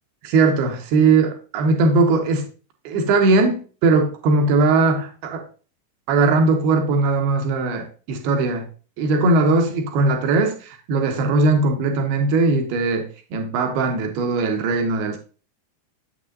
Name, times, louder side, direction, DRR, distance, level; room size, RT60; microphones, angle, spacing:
voice 1, 0.2-2.5 2.8-5.4 6.1-8.7 9.0-15.2, right 3 dB, 45° right, 5 dB, 1.3 m, -19 dB
7.6 x 6.0 x 2.7 m, 0.37 s
figure-of-eight pair, 90°, 0 cm